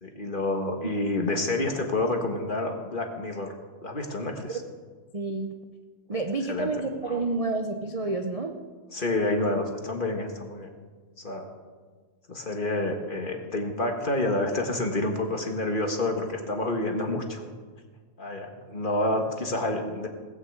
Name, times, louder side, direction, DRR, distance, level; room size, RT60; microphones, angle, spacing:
voice 1, 0.0-3.5 3.8-4.6 6.5-6.7 7.1-7.2 8.9-10.7 11.2-11.5 12.3-17.5 18.2-20.1, left 2 dB, 35° left, 3 dB, 1.5 m, -28 dB
voice 2, 5.1-5.5 6.1-8.5, right 3 dB, 30° right, 3 dB, 0.7 m, -29 dB
18.5 x 6.4 x 8.1 m, 1.5 s
omnidirectional pair, 1.7 m